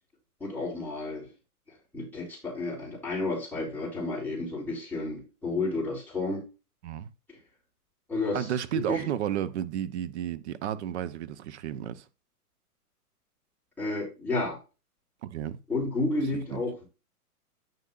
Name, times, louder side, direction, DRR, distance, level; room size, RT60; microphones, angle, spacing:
voice 1, 0.4-1.3 1.7-6.4 7.3-7.4 8.1-8.5 8.7-9.1 13.8-14.6 15.7-16.9, left 2 dB, 5° left, 3.6 m, -31 dB
voice 2, 8.3-12.0 15.2-15.6 16.5-16.6, right 10 dB, 45° right, 0.8 m, -32 dB
9.0 x 6.7 x 2.5 m
hypercardioid pair, 135°, 46 cm